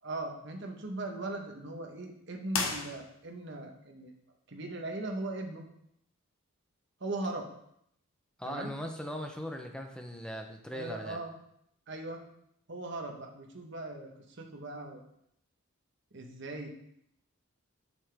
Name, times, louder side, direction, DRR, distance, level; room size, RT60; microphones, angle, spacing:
voice 1, 0.0-4.1 4.5-5.7 7.0-7.5 8.4-8.7 10.7-11.3 11.9-12.2 12.7-15.0 16.1-16.7, right 2 dB, 55° right, 2 dB, 1.1 m, -39 dB
sound 1, 2.5-3.5, left 4 dB, 70° left, 1.0 m, -35 dB
voice 2, 8.4-11.2, equal, 5° left, 4 dB, 0.6 m, -39 dB
7.2 x 6.8 x 3.5 m, 0.74 s
head